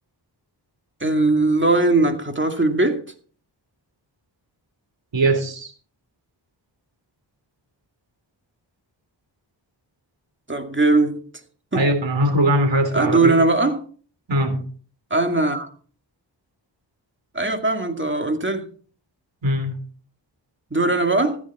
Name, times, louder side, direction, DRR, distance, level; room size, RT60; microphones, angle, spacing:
voice 1, 1.0-3.0 10.5-11.3 11.7-11.9 12.9-13.8 15.1-15.7 17.3-18.7 20.7-21.4, right 2 dB, 25° right, 2.3 m, -20 dB
voice 2, 5.1-5.7 11.7-13.3 14.3-14.6 19.4-19.8, right 1 dB, 90° right, 3.5 m, -20 dB
15.0 x 9.8 x 4.2 m
wide cardioid pair, 90°, 43 cm